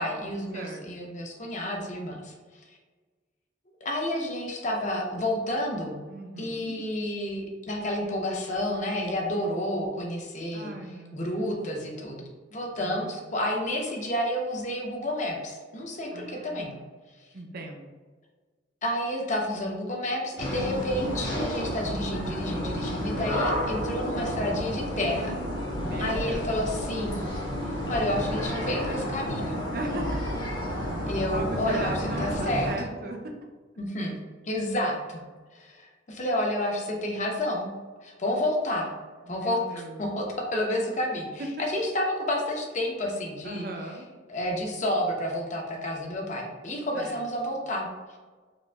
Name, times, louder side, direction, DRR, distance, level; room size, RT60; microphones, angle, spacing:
voice 1, 0.0-2.3 3.8-6.0 6.4-10.7 11.1-16.7 18.8-25.4 26.0-27.3 27.9-29.6 31.1-32.7 33.8-34.2 34.4-35.2 35.5-37.7 38.0-38.9 39.3-43.7 44.3-47.9, left 1 dB, 40° left, 0 dB, 0.7 m, -30 dB
voice 2, 0.5-1.2 6.1-6.9 10.5-11.6 12.8-13.2 16.1-16.9 17.3-17.9 25.7-26.5 29.7-30.2 31.3-33.3 39.2-40.0 41.4-41.5 43.4-44.1 46.9-47.3, right 2 dB, 55° right, 2 dB, 0.6 m, -38 dB
sound 1, 20.4-32.7, equal, 70° left, 1.3 m, -31 dB
4.9 x 2.6 x 2.3 m, 1.4 s
head